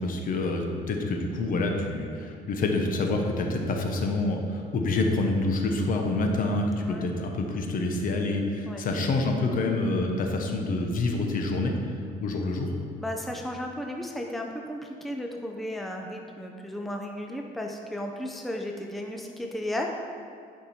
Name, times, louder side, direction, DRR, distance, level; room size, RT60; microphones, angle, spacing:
voice 1, 0.0-11.7 12.2-12.7, left 2 dB, 55° left, 2 dB, 1.2 m, -27 dB
voice 2, 6.8-7.1 8.7-8.8 12.9-19.9, left 1 dB, ahead, 1 dB, 0.7 m, -34 dB
11.5 x 5.2 x 4.4 m, 2.3 s
cardioid pair, 110°, 17 cm